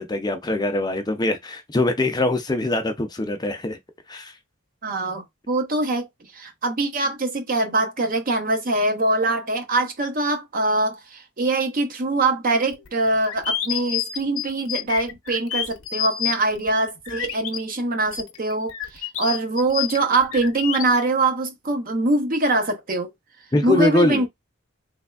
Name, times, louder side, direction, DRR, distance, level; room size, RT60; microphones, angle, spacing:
voice 1, 0.0-3.8 4.1-4.3 23.5-24.2, left 2 dB, 20° left, 0.5 m, -23 dB
voice 2, 4.8-6.1 6.3-23.1 23.6-24.3, right 2 dB, 40° right, 0.7 m, -23 dB
sound 1, 12.7-17.6 18.1-20.8, left 11 dB, 75° left, 0.7 m, -29 dB
3.4 x 3.2 x 2.3 m
head